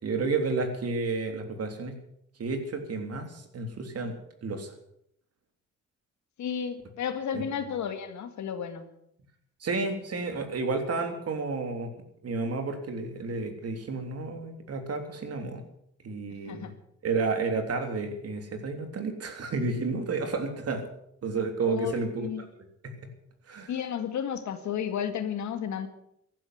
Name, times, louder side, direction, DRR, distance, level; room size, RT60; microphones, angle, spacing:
voice 1, 0.0-2.0 2.4-4.7 7.3-7.4 9.6-11.9 12.2-15.6 16.0-16.7 17.0-20.9 21.2-22.3 22.8-22.9 23.5-23.7, right 4 dB, 55° right, 6 dB, 3.4 m, -31 dB
voice 2, 6.4-8.9 16.4-16.7 21.6-21.9 22.2-22.4 23.7-25.9, left 8 dB, 70° left, 8 dB, 2.1 m, -32 dB
14.5 x 12.0 x 8.1 m, 0.75 s
cardioid pair, 90°, 30 cm